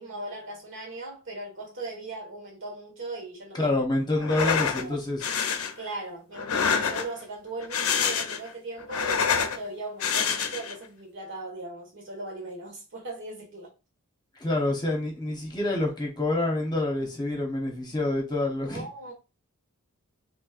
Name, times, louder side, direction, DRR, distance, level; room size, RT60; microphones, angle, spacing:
voice 1, 0.0-3.7 4.2-4.3 4.7-5.0 5.8-13.7 18.7-19.1, right 2 dB, 60° right, 1.6 m, -38 dB
voice 2, 3.5-5.3 14.3-18.9, left 2 dB, 20° left, 1.0 m, -27 dB
sound 1, 4.2-4.8 5.2-5.7 6.3-7.2 7.6-8.5 8.8-9.6 10.0-10.7, left 6 dB, 70° left, 0.6 m, -26 dB
4.4 x 3.2 x 2.5 m
head